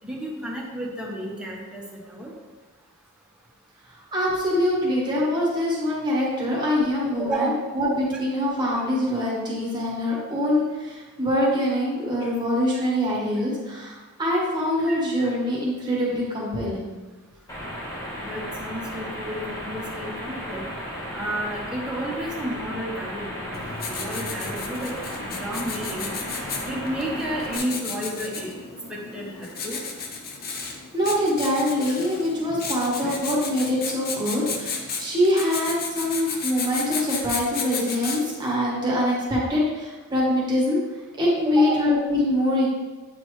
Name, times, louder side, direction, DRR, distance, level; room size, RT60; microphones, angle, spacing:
voice 1, 0.0-1.8 2.1-2.3 7.2-7.6 14.9-15.0 18.2-20.6 21.1-26.2 26.6-28.5 28.9-29.8 33.1-33.2 41.6-41.8, right 1 dB, 5° right, -4 dB, 1.1 m, -32 dB
voice 2, 4.1-16.9 30.9-40.8 41.2-42.7, left 1 dB, 20° right, -5 dB, 1.5 m, -24 dB
sound 1, 17.5-27.6, equal, 15° left, 1.4 m, -34 dB
Writing, 23.5-38.5, left 4 dB, 45° left, 0.7 m, -33 dB
8.7 x 4.3 x 3.2 m, 1.3 s
head